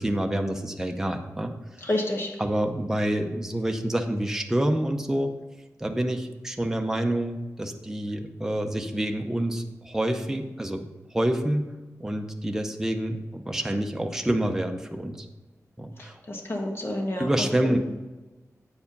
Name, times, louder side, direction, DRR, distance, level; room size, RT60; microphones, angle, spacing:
voice 1, 0.0-1.5 2.4-5.3 5.8-11.7 12.0-15.3 15.8-16.2 17.2-17.8, right 1 dB, 10° right, 4 dB, 0.6 m, -27 dB
voice 2, 1.9-2.3 16.3-17.3 17.6-17.8, left 1 dB, 45° left, 1 dB, 1.5 m, -28 dB
8.4 x 4.8 x 5.3 m, 1.1 s
wide cardioid pair, 120°, 6 cm